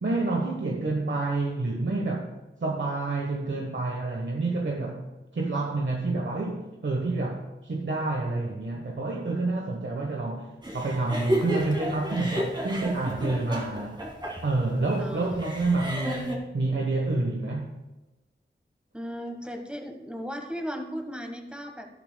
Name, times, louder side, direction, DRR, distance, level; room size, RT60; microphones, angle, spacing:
voice 1, 0.0-2.3 2.6-5.0 5.3-10.5 10.7-14.0 14.4-17.7, right 2 dB, 65° right, 0 dB, 1.2 m, -28 dB
sound 1, 10.6-16.4, equal, 20° right, 2.0 m, -32 dB
voice 2, 15.0-15.4 18.9-21.9, equal, 5° right, 4 dB, 1.3 m, -36 dB
12.5 x 11.5 x 2.3 m, 1.1 s
wide cardioid pair, 60°, 21 cm